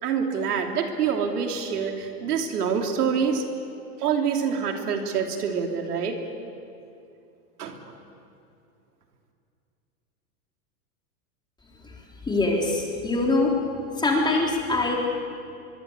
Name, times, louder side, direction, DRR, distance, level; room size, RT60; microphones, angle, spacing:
voice 1, 0.0-3.4 4.0-6.2 7.6-7.8, right 6 dB, 85° right, 3 dB, 3.2 m, -26 dB
voice 2, 12.3-13.5 14.0-15.0, left 2 dB, 10° left, -1 dB, 3.8 m, -23 dB
24.0 x 23.0 x 8.2 m, 2.6 s
supercardioid pair, 140°, 45 cm